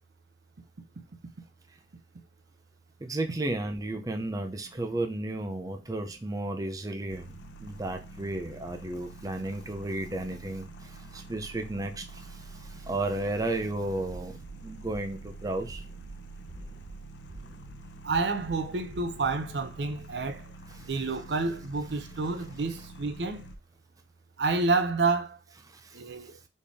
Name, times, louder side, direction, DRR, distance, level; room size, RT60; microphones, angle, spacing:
voice 1, 3.0-7.3 7.6-15.8 20.8-20.9 25.7-26.0, right 2 dB, 20° right, 0.5 m, -33 dB
sound 1, 7.1-23.6, right 2 dB, 80° left, 0.6 m, -46 dB
sound 2, 14.1-14.5 14.9-15.3 15.7-16.1 16.5-16.9 17.3-17.7 18.1-18.5 18.9-19.3, right 1 dB, 40° right, 1.2 m, -48 dB
voice 2, 18.0-20.4 20.9-23.4 24.4-25.4 25.9-26.4, right 3 dB, 75° right, 0.6 m, -29 dB
4.2 x 3.4 x 3.4 m
head